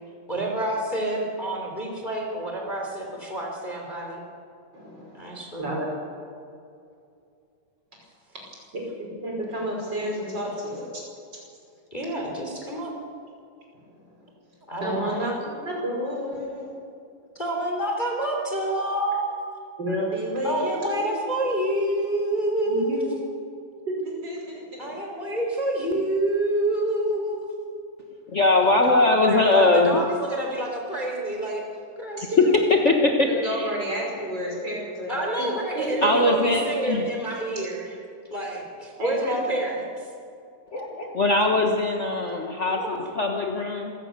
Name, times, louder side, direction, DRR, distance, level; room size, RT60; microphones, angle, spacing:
voice 1, 0.3-4.2 5.1-5.7 11.9-12.9 14.7-15.3 17.3-19.2 20.4-23.1 24.8-27.4 28.6-31.6 32.0-32.4 35.1-38.0 38.3-40.0 42.7-43.0, right 1 dB, 15° left, 0 dB, 3.4 m, -28 dB
voice 2, 4.7-5.9 8.7-11.0 14.8-16.8 19.8-21.2 22.7-23.3 23.8-24.9 32.2-32.4 33.3-35.5 35.8-36.1 39.0-39.4, equal, 30° right, -1 dB, 5.9 m, -31 dB
voice 3, 28.3-30.0 32.7-33.7 36.0-37.1 40.7-43.9, left 2 dB, 50° left, 1 dB, 0.8 m, -21 dB
26.5 x 17.5 x 6.8 m, 2.5 s
omnidirectional pair, 3.7 m